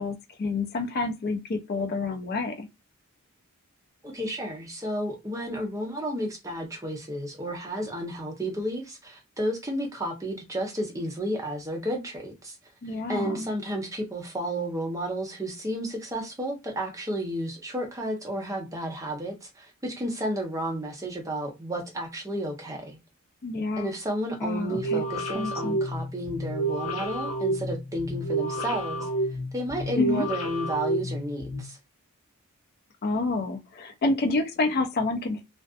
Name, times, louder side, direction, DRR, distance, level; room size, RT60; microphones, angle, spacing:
voice 1, 0.0-2.7 12.8-13.5 23.4-23.9 24.4-25.0 25.3-25.8 30.0-30.2 33.0-35.4, left 3 dB, 45° left, 0.4 m, -28 dB
voice 2, 4.0-12.6 13.1-23.0 23.8-29.1 29.5-31.8, right 1 dB, 15° right, 0.7 m, -32 dB
sound 1, 24.7-31.6, right 2 dB, 70° left, 0.9 m, -30 dB
2.4 x 2.4 x 2.3 m
head